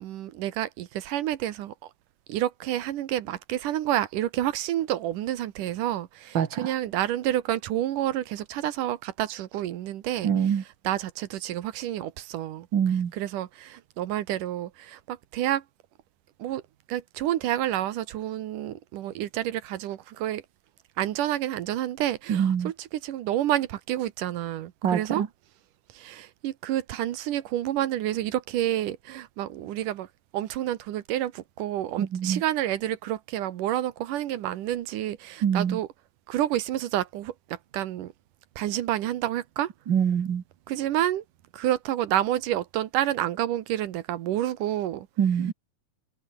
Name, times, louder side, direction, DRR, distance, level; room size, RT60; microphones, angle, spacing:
voice 1, 0.0-1.7 2.3-15.6 16.4-16.6 16.9-20.4 21.0-25.2 26.0-30.1 30.3-35.9 36.3-38.1 38.6-39.7 40.7-41.2 41.5-45.1, right 13 dB, 75° right, 2.6 m, -29 dB
voice 2, 6.3-6.7 10.2-10.6 12.7-13.1 22.3-22.7 24.8-25.3 32.0-32.4 35.4-35.8 39.9-40.4 45.2-45.5, right 8 dB, 45° right, 1.6 m, -24 dB
omnidirectional pair, 3.9 m